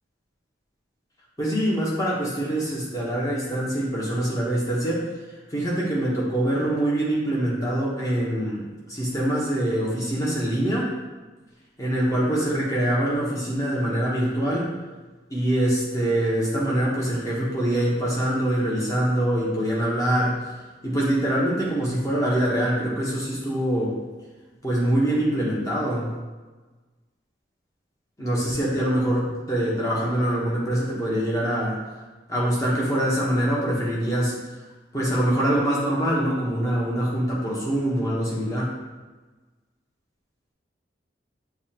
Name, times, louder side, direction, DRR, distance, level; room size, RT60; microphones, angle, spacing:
voice 1, 1.4-5.1 5.5-8.6 8.9-10.9 11.8-14.7 15.3-20.4 20.8-24.0 24.6-26.1 28.2-31.8 32.3-34.4 34.9-38.7, right 1 dB, 15° left, -6 dB, 1.0 m, -24 dB
7.0 x 2.4 x 2.9 m, 1.2 s
head